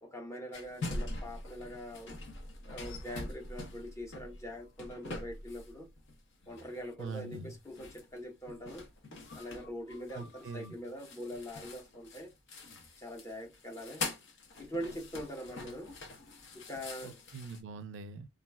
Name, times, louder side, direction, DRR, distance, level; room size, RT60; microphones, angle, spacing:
voice 1, 0.0-2.2 2.6-5.9 6.5-8.9 9.3-12.3 13.0-14.1 14.6-15.9 16.5-17.2, equal, 15° left, 0.7 m, -43 dB
sound 1, 0.5-6.2 6.4-17.6, left 2 dB, 65° left, 0.7 m, -44 dB
voice 2, 7.0-7.5 10.1-10.7 17.0-18.3, right 4 dB, 65° right, 0.4 m, -43 dB
2.4 x 2.1 x 3.3 m
head